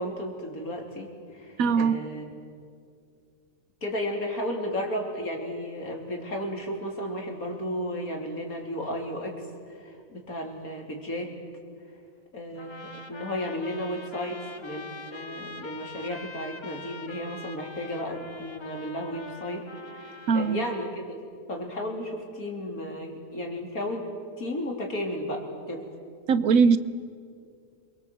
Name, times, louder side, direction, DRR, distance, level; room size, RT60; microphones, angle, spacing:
voice 1, 0.0-2.2 3.8-11.3 12.3-21.2 21.5-24.1 24.4-25.9, equal, 80° left, 1 dB, 3.9 m, -34 dB
voice 2, 1.6-2.0 20.3-20.7 26.3-26.8, right 5 dB, 75° right, 14 dB, 1.3 m, -21 dB
Trumpet - B natural minor, 12.6-20.9, left 3 dB, 25° left, 0.9 m, -43 dB
28.5 x 23.0 x 7.8 m, 2.3 s
omnidirectional pair, 1.5 m